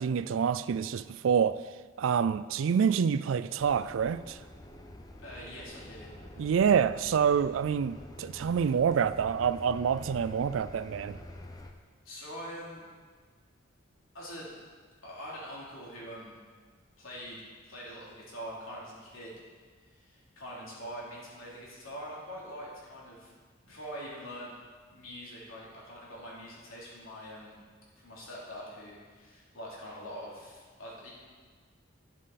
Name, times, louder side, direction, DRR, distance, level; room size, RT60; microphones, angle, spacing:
voice 1, 0.0-1.6 2.0-4.4 6.4-11.2, right 7 dB, 70° right, 0.3 m, -27 dB
sound 1, 3.6-11.7, left 1 dB, 20° left, 0.6 m, -47 dB
voice 2, 5.2-6.1 12.0-12.8 14.1-14.5 15.0-16.4 17.0-19.3 19.9-23.3 23.6-24.5 24.9-27.6 28.0-31.1, equal, 85° left, 3.1 m, -44 dB
11.0 x 7.5 x 4.1 m
head